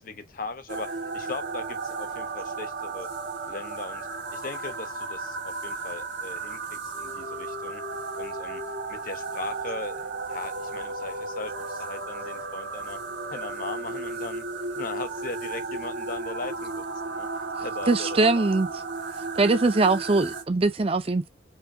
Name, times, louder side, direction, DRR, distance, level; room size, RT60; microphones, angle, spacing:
voice 1, 0.0-3.1 3.5-7.8 8.2-8.6 8.9-13.0 13.3-14.5 14.8-18.5, left 3 dB, 50° left, 0.9 m, -39 dB
sound 1, 0.7-20.4, right 3 dB, 90° right, 1.7 m, -34 dB
voice 2, 17.9-18.7 19.4-21.3, right 3 dB, 30° right, 0.5 m, -22 dB
4.5 x 2.7 x 2.6 m
head